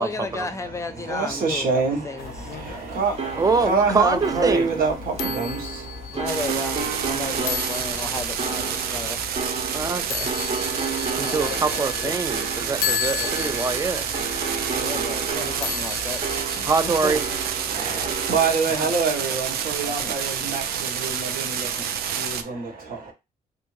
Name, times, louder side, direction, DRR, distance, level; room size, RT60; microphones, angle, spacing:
voice 1, 0.0-2.6 6.1-9.2 11.2-12.1 13.0-13.5 14.7-17.2 18.0-18.1 18.7-18.9 19.3-19.4 19.8-20.1 21.6-21.7, left 3 dB, 20° left, 0.6 m, -34 dB
voice 2, 1.0-6.2 17.7-23.1, right 4 dB, 70° right, 1.2 m, -26 dB
sound 1, 2.2-17.5, left 10 dB, 80° left, 0.5 m, -35 dB
sound 2, 2.2-18.5, right 4 dB, 45° right, 0.9 m, -32 dB
voice 3, 3.4-4.7 9.7-10.3 11.2-14.1 16.7-17.2, right 4 dB, 25° right, 0.4 m, -24 dB
sound 3, 6.3-22.4, right 8 dB, 90° right, 0.4 m, -29 dB
3.3 x 2.6 x 3.1 m
cardioid pair, 85°, 15 cm